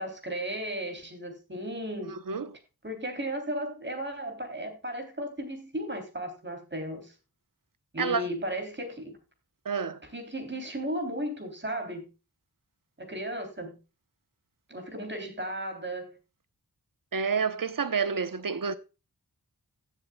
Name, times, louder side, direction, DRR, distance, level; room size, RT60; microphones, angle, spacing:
voice 1, 0.0-2.2 2.8-7.1 7.9-9.1 10.0-12.1 13.0-13.8 14.7-16.2, right 1 dB, 30° right, 3.4 m, -35 dB
voice 2, 2.1-2.5 8.0-8.2 9.6-10.0 17.1-18.7, right 5 dB, 60° right, 1.0 m, -29 dB
16.5 x 7.5 x 2.3 m
wide cardioid pair, 85°, 37 cm